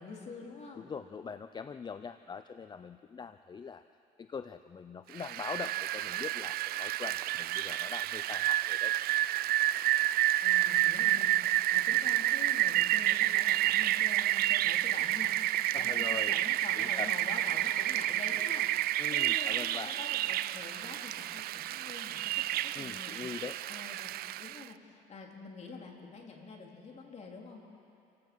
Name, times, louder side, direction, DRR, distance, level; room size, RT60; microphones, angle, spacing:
voice 1, 0.0-0.9 9.8-9.9 10.4-23.2 23.7-27.6, left 4 dB, 40° left, 0 dB, 3.4 m, -47 dB
voice 2, 0.8-3.8 4.2-8.9 15.7-16.3 16.8-17.1 19.0-19.9 22.8-23.6, left 6 dB, 25° left, 11 dB, 0.5 m, -42 dB
Rain, 5.2-24.6, right 15 dB, 65° right, 0.4 m, -30 dB
28.0 x 16.5 x 6.1 m, 2.7 s
cardioid pair, 110°, 17 cm